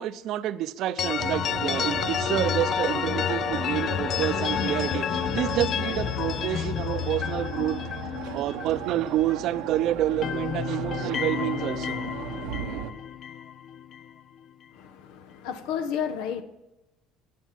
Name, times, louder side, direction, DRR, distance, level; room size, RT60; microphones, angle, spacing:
voice 1, 0.0-7.8 8.3-12.0, right 12 dB, 65° right, 13 dB, 0.7 m, -28 dB
sound 1, 1.0-9.7 10.0-14.1, left 9 dB, 50° left, 0.4 m, -30 dB
sound 2, 1.2-12.9, right 10 dB, 85° right, 0.9 m, -37 dB
voice 2, 14.7-16.4, left 8 dB, 85° left, 10 dB, 1.0 m, -32 dB
10.5 x 8.3 x 7.6 m, 0.98 s
supercardioid pair, 105°, 0 cm